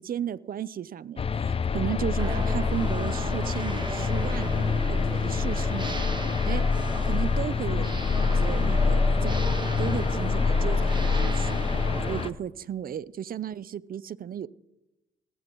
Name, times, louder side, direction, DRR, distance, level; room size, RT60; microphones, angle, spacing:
voice 1, 0.0-6.1 6.5-6.6 7.0-9.5 9.8-14.5, right 9 dB, 45° right, 18 dB, 0.6 m, -35 dB
sound 1, 1.2-12.3, left 5 dB, 30° left, 0.5 m, -26 dB
sound 2, 2.2-12.3, right 3 dB, 25° right, 1.4 m, -36 dB
20.0 x 18.5 x 3.1 m, 0.96 s
cardioid pair, 90°, 20 cm